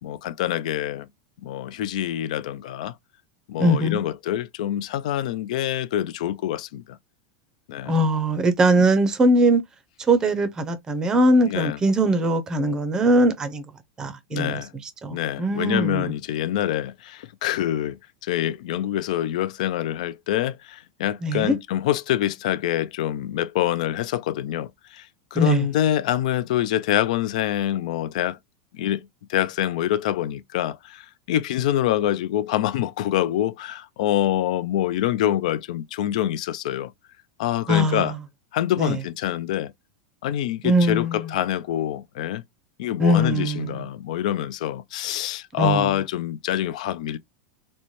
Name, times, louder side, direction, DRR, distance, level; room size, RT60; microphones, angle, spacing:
voice 1, 0.0-1.1 1.4-2.9 3.5-7.0 7.7-7.9 8.8-8.9 11.5-11.8 14.3-14.7 15.1-18.0 18.2-28.4 28.7-36.9 37.4-38.1 38.5-39.7 40.2-42.4 42.8-47.2, left 12 dB, 70° left, 0.4 m, -26 dB
voice 2, 3.6-4.0 7.9-9.6 10.1-13.6 14.0-16.1 21.2-21.5 25.3-25.6 37.7-38.2 38.8-39.0 40.6-41.3 43.0-43.9 45.6-45.9, right 1 dB, 15° right, 0.5 m, -21 dB
4.0 x 2.2 x 3.1 m
supercardioid pair, 145°, 4 cm